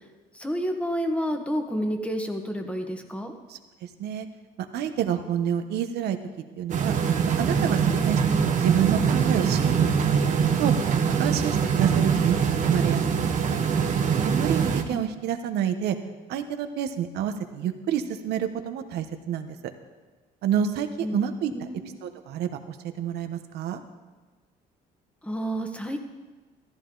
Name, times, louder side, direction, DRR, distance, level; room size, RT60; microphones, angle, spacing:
voice 1, 0.3-3.3 14.9-15.0 21.0-21.2 21.5-22.0 25.2-26.0, equal, 5° left, 5 dB, 1.5 m, -30 dB
voice 2, 3.5-4.3 4.7-6.2 6.6-6.9 7.4-10.7 11.1-13.2 13.5-13.6 14.2-16.0 16.3-19.6 20.4-21.7 22.0-23.8, right 9 dB, 75° right, 7 dB, 1.1 m, -29 dB
sound 1, 6.7-14.8, right 6 dB, 50° right, 1.3 m, -23 dB
14.5 x 13.5 x 3.9 m, 1.3 s
cardioid pair, 110°, 17 cm